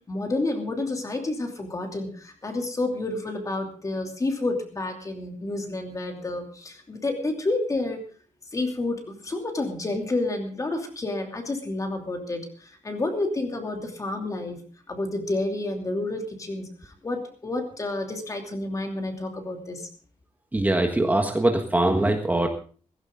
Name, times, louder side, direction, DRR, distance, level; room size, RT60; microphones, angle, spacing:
voice 1, 0.1-8.0 8.5-14.6 14.9-19.9, left 2 dB, 25° left, 3 dB, 2.8 m, -30 dB
voice 2, 20.5-22.5, right 1 dB, 15° right, 3 dB, 1.5 m, -22 dB
16.5 x 16.0 x 3.8 m, 0.41 s
wide cardioid pair, 165°, 13 cm